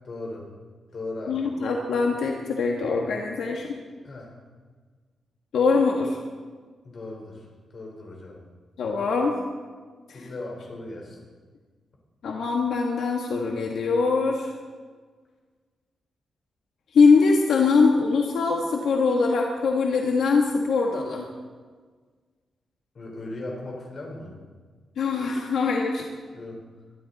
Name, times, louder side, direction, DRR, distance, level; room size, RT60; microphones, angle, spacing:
voice 1, 0.0-0.5 0.9-1.5 4.0-4.3 6.8-7.5 7.7-8.4 10.1-11.2 22.9-24.4 26.3-26.6, left 2 dB, 40° left, 0 dB, 4.2 m, -37 dB
voice 2, 1.3-3.8 5.5-6.2 8.8-9.4 10.1-10.3 12.2-14.5 16.9-21.3 25.0-26.1, left 4 dB, 80° left, 0 dB, 1.6 m, -22 dB
22.5 x 12.5 x 4.2 m, 1.5 s
wide cardioid pair, 160°, 0 cm